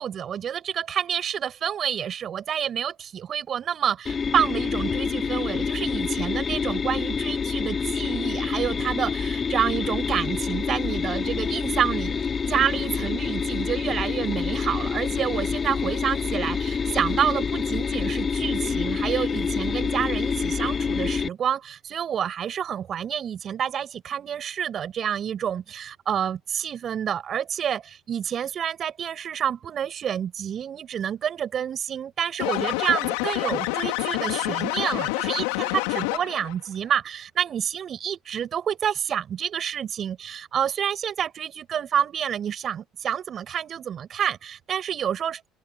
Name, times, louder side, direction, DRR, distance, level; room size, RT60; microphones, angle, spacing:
voice 1, 0.0-12.2 12.5-45.5, right 9 dB, 50° right, 7.4 m, -28 dB
sound 1, 4.1-21.3, left 5 dB, 35° left, 4.3 m, -27 dB
sound 2, 32.4-36.5, left 23 dB, 85° left, 2.7 m, -27 dB
supercardioid pair, 75°, 0 cm